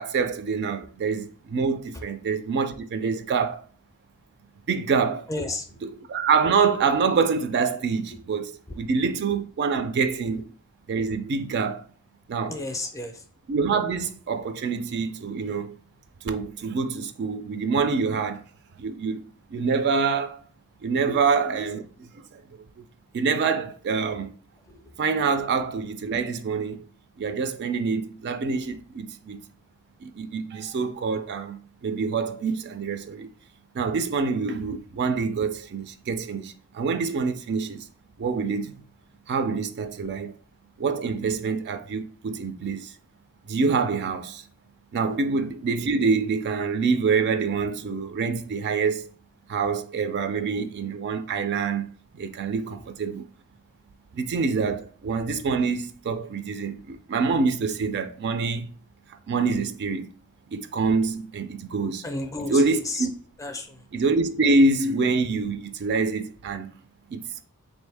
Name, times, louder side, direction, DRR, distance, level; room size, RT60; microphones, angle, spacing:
voice 1, 0.0-3.6 4.7-5.3 6.1-10.4 10.9-11.8 12.3-12.5 13.5-15.7 16.2-18.4 18.8-19.2 19.5-20.4 20.8-21.8 22.3-22.4 23.1-24.3 25.0-26.8 27.2-29.4 30.0-31.6 31.8-33.3 33.7-37.8 38.2-38.8 39.3-40.3 40.8-42.9 43.5-44.4 44.9-49.1 49.5-51.9 52.2-53.2 54.1-58.7 59.3-60.1 60.5-62.0 62.5-63.1 63.9-66.7 67.1-67.2, right 4 dB, 50° right, 0.3 m, -26 dB
voice 2, 5.3-5.8 8.1-8.2 8.7-8.8 10.4-10.5 12.5-13.2 21.1-21.2 24.7-24.9 45.1-45.2 52.7-52.8 62.0-63.1 63.4-63.9, left 2 dB, 15° left, 0.5 m, -33 dB
3.9 x 2.6 x 3.4 m
head